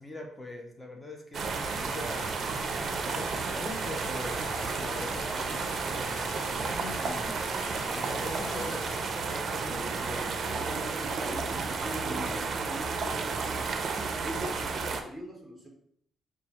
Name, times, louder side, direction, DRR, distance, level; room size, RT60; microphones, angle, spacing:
voice 1, 0.0-2.4 2.8-7.5 7.9-10.4 12.0-12.3, left 1 dB, 20° left, 3 dB, 0.8 m, -42 dB
Stream, 1.3-8.5, right 1 dB, 15° right, 1.1 m, -49 dB
sound 1, 1.3-15.0, right 4 dB, 55° right, 0.5 m, -32 dB
sound 2, 1.5-9.1, left 3 dB, 90° left, 0.9 m, -46 dB
voice 2, 9.6-13.8 14.2-15.7, equal, ahead, 0 dB, 1.2 m, -42 dB
6.1 x 2.3 x 2.9 m, 0.66 s
cardioid pair, 90°, 0 cm